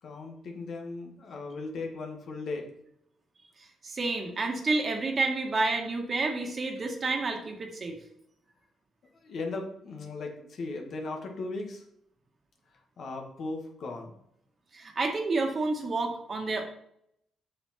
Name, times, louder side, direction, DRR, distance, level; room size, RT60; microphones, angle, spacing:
voice 1, 0.0-2.7 9.1-11.8 12.7-14.1, left 3 dB, 60° left, 2 dB, 1.7 m, -37 dB
voice 2, 3.8-8.0 14.7-16.6, right 3 dB, 40° right, 3 dB, 1.7 m, -29 dB
7.7 x 6.1 x 4.3 m, 0.72 s
cardioid pair, 90°, 0 cm